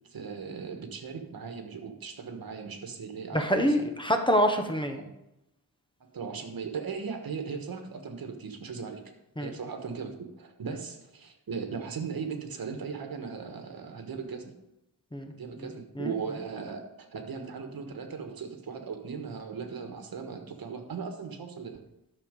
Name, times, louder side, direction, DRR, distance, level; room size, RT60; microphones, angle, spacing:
voice 1, 0.1-3.8 4.9-5.1 6.1-9.0 9.4-14.5 15.3-21.8, right 5 dB, 75° right, 5 dB, 1.5 m, -38 dB
voice 2, 3.3-5.0 9.4-9.5 15.1-15.3 15.6-16.1, equal, 15° left, 5 dB, 0.9 m, -26 dB
11.5 x 6.5 x 5.2 m, 0.87 s
wide cardioid pair, 155°, 36 cm